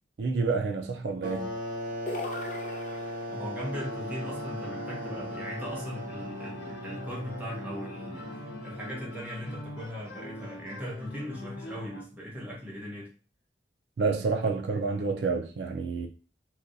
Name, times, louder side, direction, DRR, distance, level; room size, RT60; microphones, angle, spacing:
voice 1, 0.2-1.5 14.0-16.1, right 4 dB, 80° right, 0.4 m, -29 dB
sound 1, 1.2-9.6, equal, 50° right, 0.8 m, -38 dB
sound 2, 2.1-3.6, left 2 dB, 45° left, 0.4 m, -39 dB
voice 2, 3.3-13.1, equal, 10° right, 1.0 m, -39 dB
sound 3, 3.7-12.0, left 1 dB, 90° left, 0.8 m, -42 dB
4.0 x 2.3 x 2.5 m
head